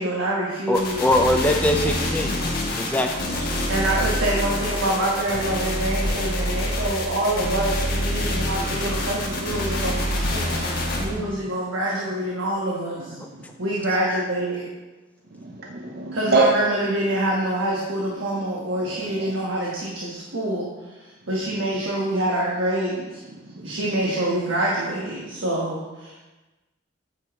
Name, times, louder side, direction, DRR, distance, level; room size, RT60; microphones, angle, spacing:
voice 1, 0.0-1.0 3.7-13.2 13.6-14.7 16.1-20.7 20.9-23.2 23.6-26.1, right 1 dB, 90° right, -5 dB, 1.3 m, -26 dB
sound 1, 0.7-11.0, left 1 dB, 55° left, 1.4 m, -26 dB
voice 2, 0.7-2.5 2.8-3.3 14.1-14.2, left 1 dB, 10° left, 3 dB, 0.5 m, -22 dB
voice 3, 1.7-2.0 3.3-3.5 3.9-4.1 7.9-9.1 9.4-10.7 11.0-11.4 13.2-13.5 15.3-16.5 18.7-19.4 23.4-23.8, right 3 dB, 55° right, 0 dB, 0.7 m, -29 dB
8.8 x 5.4 x 3.5 m, 1.1 s
head